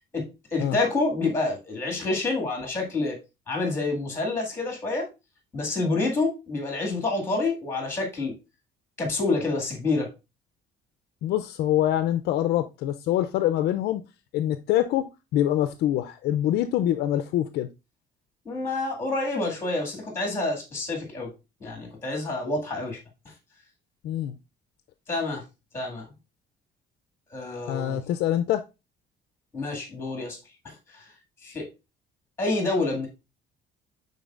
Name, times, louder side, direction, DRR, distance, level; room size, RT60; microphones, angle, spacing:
voice 1, 0.1-3.2 3.5-5.1 5.5-8.3 9.0-10.1 18.5-21.3 21.6-23.0 25.1-25.4 25.7-26.1 27.3-28.0 29.5-30.4 30.6-31.1 31.4-31.7 32.4-33.1, left 3 dB, 15° left, 1.9 m, -28 dB
voice 2, 11.2-14.0 14.3-15.1 15.3-17.7 24.0-24.3 27.7-28.6, left 12 dB, 60° left, 0.4 m, -25 dB
10.5 x 3.9 x 2.4 m
cardioid pair, 180°, 19 cm